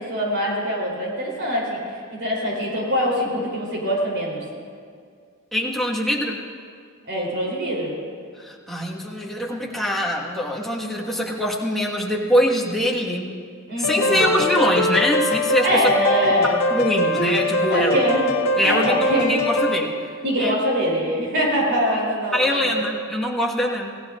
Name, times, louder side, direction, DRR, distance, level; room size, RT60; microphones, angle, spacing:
voice 1, 0.0-4.4 7.1-8.0 13.7-14.4 15.6-16.6 17.7-18.3 18.6-19.3 20.2-22.9, equal, 55° right, -3 dB, 3.5 m, -24 dB
voice 2, 5.5-6.4 8.4-13.4 13.8-15.9 16.4-18.0 18.6-19.9 20.4-20.5 22.3-24.0, equal, ahead, -3 dB, 1.6 m, -23 dB
sound 1, 13.8-19.8, left 1 dB, 90° left, 1.6 m, -22 dB
27.0 x 17.0 x 2.5 m, 2.1 s
head